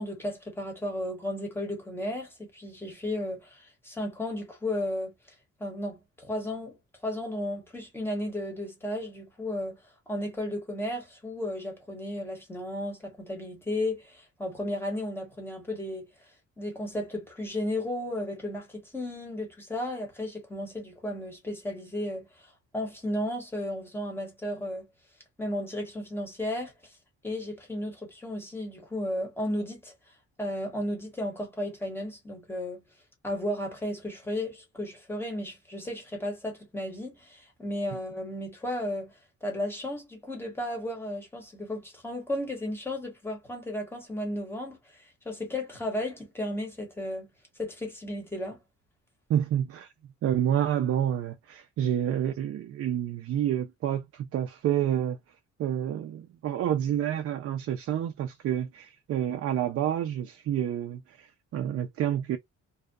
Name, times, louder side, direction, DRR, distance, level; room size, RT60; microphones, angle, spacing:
voice 1, 0.0-5.1 5.6-6.8 7.0-16.1 16.6-24.9 25.4-26.9 27.2-29.9 30.4-32.8 33.2-47.3 47.6-48.6, left 1 dB, 5° left, 1.1 m, -34 dB
voice 2, 49.3-49.9 50.2-55.2 55.6-62.4, right 10 dB, 50° right, 0.4 m, -29 dB
2.6 x 2.3 x 2.2 m
cardioid pair, 155°, 30 cm